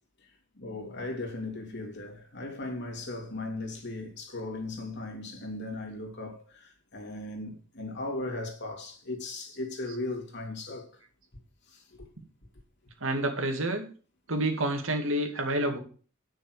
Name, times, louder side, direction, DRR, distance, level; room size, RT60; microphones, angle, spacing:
voice 1, 0.6-11.0 11.7-12.1, left 2 dB, 60° left, 2.9 m, -37 dB
voice 2, 13.0-13.9 14.3-15.8, right 1 dB, 75° right, 2.4 m, -28 dB
10.0 x 6.5 x 6.4 m
head